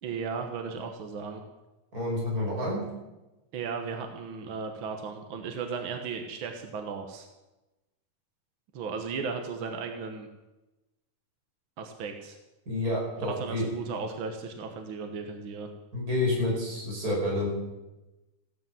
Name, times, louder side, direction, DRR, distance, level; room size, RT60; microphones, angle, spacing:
voice 1, 0.0-1.4 3.5-7.3 8.7-10.3 11.8-12.4 13.2-15.7, right 5 dB, 55° right, 4 dB, 1.5 m, -35 dB
voice 2, 1.9-2.8 12.7-13.7 15.9-17.5, left 1 dB, 25° right, -4 dB, 5.9 m, -29 dB
15.5 x 11.5 x 7.6 m, 1.0 s
omnidirectional pair, 3.8 m